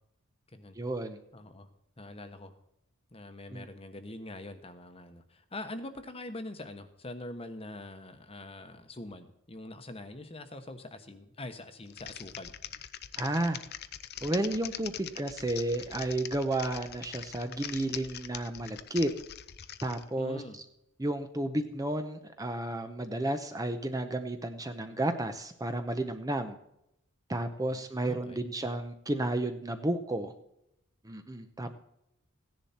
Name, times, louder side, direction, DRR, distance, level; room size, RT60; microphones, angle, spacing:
voice 1, 0.8-1.2 3.5-3.7 13.2-13.6 14.2-19.1 19.8-20.4 21.0-26.6 27.3-30.3 31.0-31.7, right 1 dB, 15° right, 7 dB, 0.7 m, -32 dB
voice 2, 1.3-1.7 2.0-2.5 3.1-12.5 20.2-20.6 27.7-28.4 31.6-31.7, left 2 dB, 25° left, 8 dB, 1.1 m, -44 dB
Typing, 11.9-20.0, left 10 dB, 50° left, 0.6 m, -43 dB
16.0 x 10.5 x 4.3 m, 0.81 s
head